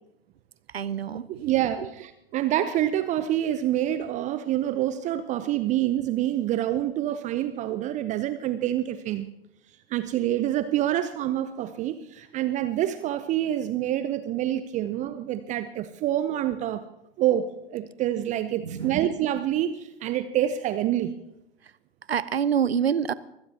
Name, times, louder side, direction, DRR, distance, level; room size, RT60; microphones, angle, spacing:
voice 1, 0.7-1.4 1.8-1.9 18.6-19.0 22.1-23.1, right 8 dB, 80° right, 19 dB, 0.7 m, -26 dB
voice 2, 1.4-9.3 9.9-16.8 17.2-21.1, right 12 dB, 25° right, 12 dB, 0.6 m, -27 dB
23.0 x 17.0 x 2.8 m, 0.85 s
figure-of-eight pair, 95°, 31 cm